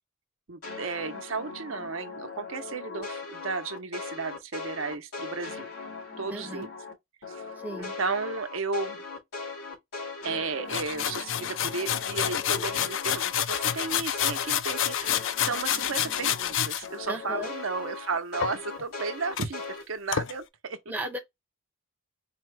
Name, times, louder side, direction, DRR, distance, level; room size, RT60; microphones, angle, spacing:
voice 1, 0.5-5.7 6.2-6.7 7.3-7.5 7.8-9.0 10.2-20.8, right 4 dB, 80° right, 0.8 m, -34 dB
sound 1, 0.6-6.9 7.2-16.5 16.8-19.8, left 4 dB, 90° left, 2.2 m, -39 dB
voice 2, 6.3-6.7 7.6-7.9 17.1-17.5 20.9-21.2, equal, 10° right, 0.6 m, -35 dB
sound 2, 10.7-16.9 18.4-19.0 19.4-19.5 20.1-20.3, left 10 dB, 65° left, 0.4 m, -28 dB
4.3 x 2.2 x 4.6 m
head